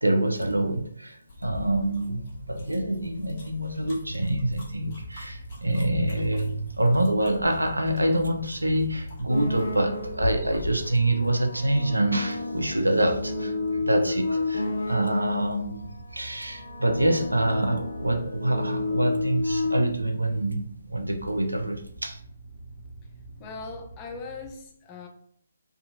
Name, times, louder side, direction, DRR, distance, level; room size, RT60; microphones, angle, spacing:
voice 1, 0.0-20.6 20.9-22.2, right 1 dB, 80° right, 4 dB, 0.5 m, -26 dB
sound 1, 1.3-10.9, left 2 dB, 35° left, 1.0 m, -40 dB
sound 2, 5.0-24.5, right 3 dB, 25° right, 1.2 m, -46 dB
sound 3, 9.3-10.4 11.1-15.6 16.4-19.8, left 3 dB, 60° left, 0.6 m, -31 dB
voice 2, 23.4-25.1, left 4 dB, 20° left, 1 dB, 0.4 m, -39 dB
2.6 x 2.4 x 2.5 m, 0.64 s
figure-of-eight pair, 140°, 0 cm